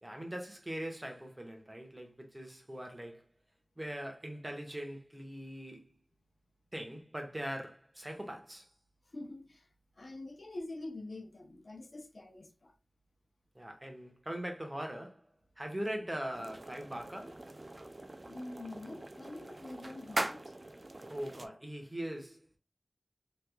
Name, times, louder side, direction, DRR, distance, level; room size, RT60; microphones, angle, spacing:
voice 1, 0.0-3.2 3.8-5.9 6.7-8.7 13.5-15.3 15.6-17.4 21.1-22.6, right 1 dB, 25° right, 1.1 m, -41 dB
voice 2, 9.1-9.7 10.0-12.7 18.2-20.5, left 2 dB, 65° left, 0.7 m, -45 dB
sound 1, 16.3-21.5, right 2 dB, 45° right, 0.4 m, -42 dB
3.4 x 3.1 x 2.2 m
wide cardioid pair, 60°, 0 cm